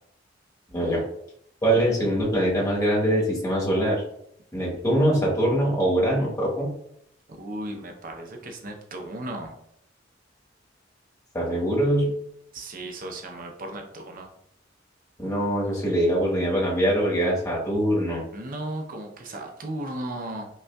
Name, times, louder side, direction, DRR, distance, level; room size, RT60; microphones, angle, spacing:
voice 1, 0.7-1.0 1.6-4.0 4.5-6.7 11.3-12.1 15.2-18.2, right 1 dB, 20° left, -4 dB, 1.1 m, -23 dB
voice 2, 7.4-9.6 12.5-14.3 18.3-20.5, right 1 dB, 50° right, 3 dB, 0.6 m, -35 dB
5.2 x 2.4 x 2.3 m, 0.72 s
head